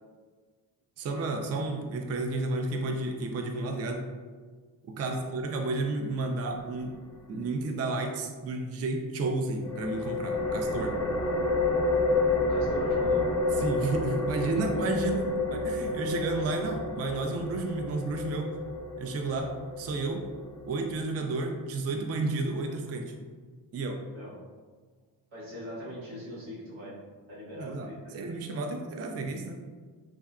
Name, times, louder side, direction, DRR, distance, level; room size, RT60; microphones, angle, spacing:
voice 1, 1.0-4.0 4.9-7.0 7.3-11.0 13.6-18.5 19.0-20.3 20.7-23.1 23.7-24.0 27.6-29.6, right 3 dB, 35° right, 3 dB, 0.4 m, -32 dB
sound 1, 9.6-21.0, left 2 dB, 10° left, 0.5 m, -30 dB
voice 2, 12.3-13.4 24.1-24.4 25.3-27.0 27.3-28.2, equal, 90° right, -8 dB, 1.2 m, -41 dB
3.5 x 2.1 x 2.4 m, 1.5 s
cardioid pair, 60°, 44 cm